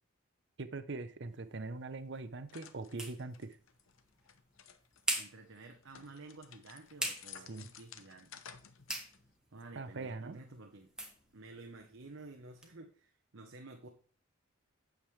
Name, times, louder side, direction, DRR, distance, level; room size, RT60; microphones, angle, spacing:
voice 1, 0.6-3.6 7.5-7.7 9.7-10.4, right 3 dB, 60° right, 12 dB, 0.7 m, -42 dB
sound 1, 1.2-12.8, right 1 dB, 5° right, 1.4 m, -45 dB
sound 2, 2.5-5.1 5.6-9.3, left 8 dB, 85° left, 0.8 m, -55 dB
voice 2, 5.2-8.4 9.5-10.9 11.3-13.9, right 2 dB, 80° right, 3 dB, 1.0 m, -52 dB
8.9 x 7.4 x 3.2 m, 0.41 s
head